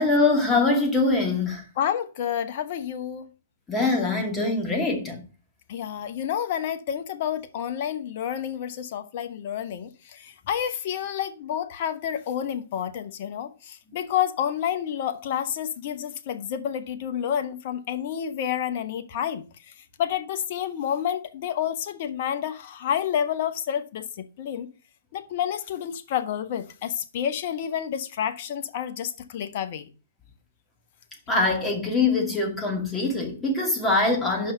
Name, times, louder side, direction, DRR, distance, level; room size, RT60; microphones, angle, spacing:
voice 1, 0.0-1.6 3.7-5.2 31.3-34.5, left 3 dB, 15° left, 2.2 m, -23 dB
voice 2, 1.8-3.3 5.7-19.4 20.0-24.7 25.1-29.9, left 9 dB, 50° left, 1.0 m, -29 dB
5.6 x 5.5 x 5.4 m
hypercardioid pair, 120°, 0 cm